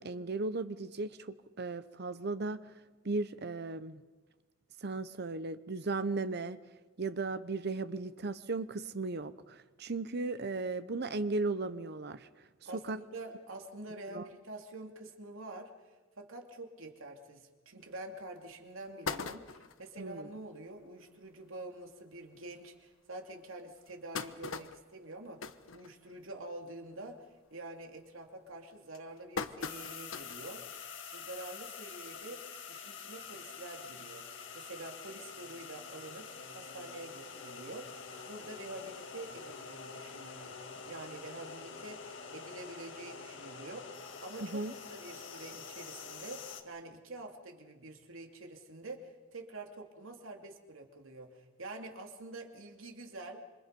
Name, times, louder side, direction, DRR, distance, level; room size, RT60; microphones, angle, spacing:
voice 1, 0.0-2.6 3.0-4.0 4.8-6.6 7.0-12.3 12.7-13.0 14.1-14.2 20.0-20.3 44.5-44.7, right 3 dB, 55° right, 12 dB, 0.8 m, -36 dB
voice 2, 12.6-32.4 32.7-34.3 34.5-44.6 44.9-53.4, right 2 dB, 85° right, 3 dB, 3.0 m, -47 dB
sound 1, 17.9-18.0 18.5-18.6 18.8-19.9 20.4-20.5 20.8-20.9 21.2-21.4 22.1-22.2 22.7-22.8 23.6-26.4 26.8-27.1 27.5-27.9 28.5-30.5 30.9-31.0 32.2-32.3, left 5 dB, 85° left, 1.1 m, -41 dB
sound 2, 29.6-46.6, left 5 dB, 65° left, 1.9 m, -46 dB
27.0 x 26.0 x 5.3 m, 1.2 s
head